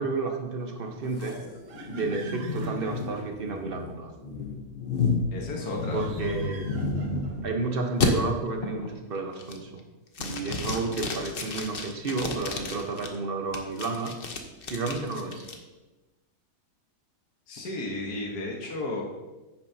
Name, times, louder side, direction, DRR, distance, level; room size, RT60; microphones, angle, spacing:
voice 1, 0.0-1.4 1.9-4.1 5.9-6.6 7.4-9.8 10.2-14.1 14.7-15.4, right 3 dB, 40° right, 4 dB, 1.1 m, -31 dB
sound 1, 0.8-3.9 5.5-7.5, right 4 dB, 85° right, 1.6 m, -48 dB
sound 2, 1.2-7.5 8.0-8.1 8.6-9.0 9.4-9.8 10.1-13.1 13.5-15.5, left 4 dB, 45° left, 0.9 m, -32 dB
voice 2, 5.3-6.1 17.5-19.0, left 2 dB, 75° left, -1 dB, 1.8 m, -33 dB
10.5 x 9.1 x 2.8 m, 1.1 s
omnidirectional pair, 1.7 m